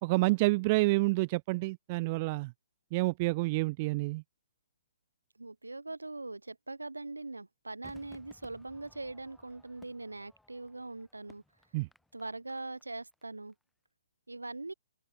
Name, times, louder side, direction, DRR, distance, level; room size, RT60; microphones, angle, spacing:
voice 1, 0.0-2.5 2.9-4.2 11.7-11.9, right 23 dB, 35° right, 0.9 m, -28 dB
voice 2, 5.4-11.4 12.1-13.5 14.3-14.7, right 2 dB, 85° right, 7.1 m, -42 dB
Crowd / Fireworks, 7.8-13.2 13.5-13.6, left 1 dB, 5° left, 5.4 m, -61 dB
open air
figure-of-eight pair, 130°, 0 cm